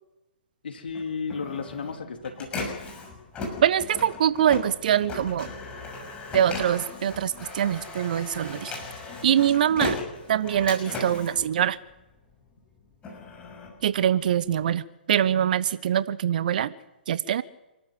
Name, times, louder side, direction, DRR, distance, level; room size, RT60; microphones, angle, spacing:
voice 1, 0.6-2.6, left 5 dB, 65° left, 5 dB, 3.3 m, -33 dB
Printer, 0.9-12.3 12.8-14.6, left 3 dB, 20° left, 6.3 m, -37 dB
voice 2, 3.6-5.5 6.3-8.7 9.2-10.0 10.3-11.8 13.8-16.7 17.1-17.4, right 10 dB, 50° right, 17 dB, 1.0 m, -23 dB
27.5 x 13.0 x 8.1 m, 0.99 s
figure-of-eight pair, 125°, 6 cm